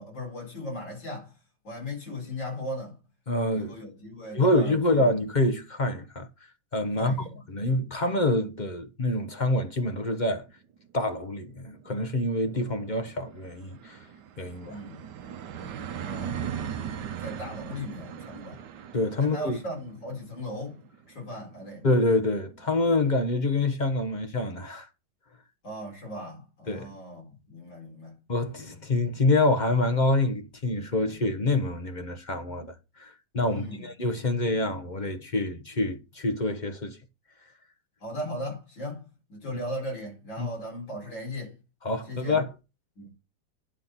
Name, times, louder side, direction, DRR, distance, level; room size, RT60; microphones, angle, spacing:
voice 1, 0.0-1.3 1.6-3.0 3.5-5.1 7.0-7.8 14.7-15.1 15.9-16.5 16.7-18.6 19.2-20.8 21.1-21.9 25.6-28.2 33.5-33.9 38.0-41.5 42.1-42.4 43.0-43.1, left 1 dB, 65° left, 4.9 m, -38 dB
voice 2, 3.3-3.8 4.3-6.3 6.7-7.1 7.5-10.4 10.9-14.0 14.4-14.8 18.9-19.6 21.8-24.9 26.7-26.9 28.3-32.7 33.0-37.0 40.4-40.5 41.8-42.5, left 2 dB, 40° left, 0.7 m, -26 dB
sound 1, 10.6-10.7 11.0-11.1 11.3-22.8, right 8 dB, 65° right, 1.3 m, -40 dB
9.9 x 4.1 x 7.3 m
omnidirectional pair, 2.1 m